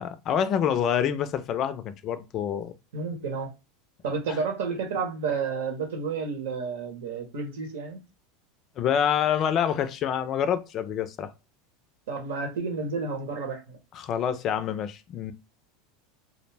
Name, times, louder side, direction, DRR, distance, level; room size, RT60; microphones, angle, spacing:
voice 1, 0.0-2.7 4.3-4.4 8.8-11.3 13.9-15.3, left 8 dB, 40° left, 0.4 m, -27 dB
voice 2, 2.9-3.5 4.0-8.0 12.1-13.8, right 4 dB, 75° right, 1.0 m, -31 dB
2.2 x 2.1 x 3.3 m
supercardioid pair, 115°, 0 cm